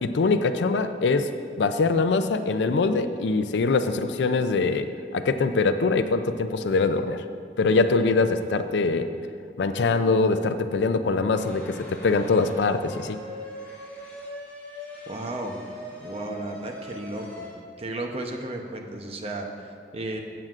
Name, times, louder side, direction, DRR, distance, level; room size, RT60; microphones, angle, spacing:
voice 1, 0.0-7.2 7.6-9.1 9.6-13.2, left 3 dB, 75° left, 9 dB, 0.4 m, -23 dB
sound 1, 11.3-17.5, left 1 dB, 10° left, 2.1 m, -41 dB
voice 2, 15.1-15.6 16.0-17.5 17.8-20.2, right 2 dB, 35° right, 3 dB, 0.8 m, -34 dB
14.5 x 7.8 x 2.5 m, 2.2 s
head